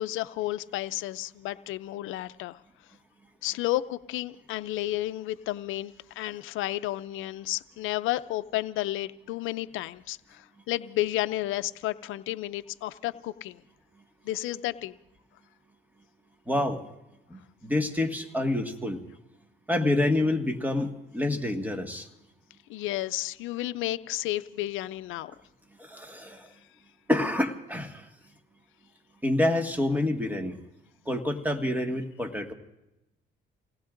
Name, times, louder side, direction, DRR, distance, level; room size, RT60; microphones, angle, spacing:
voice 1, 0.0-2.6 3.4-13.6 14.3-14.9 22.7-25.3, left 15 dB, 85° left, 15 dB, 0.5 m, -32 dB
voice 2, 16.5-16.8 17.3-19.0 19.7-22.1 25.8-26.5 27.1-28.1 29.2-30.6 31.0-32.5, left 1 dB, 10° right, 4 dB, 1.7 m, -27 dB
29.0 x 19.0 x 2.5 m, 0.92 s
cardioid pair, 90°, 20 cm